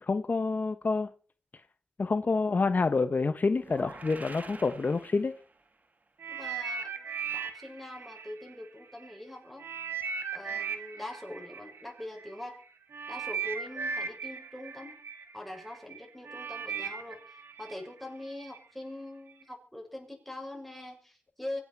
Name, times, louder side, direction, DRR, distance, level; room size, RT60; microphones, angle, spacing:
voice 1, 0.0-1.1 2.0-5.3, left 4 dB, 45° left, 0.9 m, -28 dB
sound 1, 3.6-5.8, right 3 dB, 45° right, 2.5 m, -47 dB
sound 2, 6.2-9.1 9.6-18.6 19.3-19.4, right 6 dB, 85° right, 2.3 m, -38 dB
voice 2, 6.3-6.9 7.3-9.7 10.3-12.6 13.1-14.9 15.3-21.6, left 1 dB, 5° left, 6.9 m, -43 dB
25.0 x 8.4 x 4.6 m
cardioid pair, 65°, 4 cm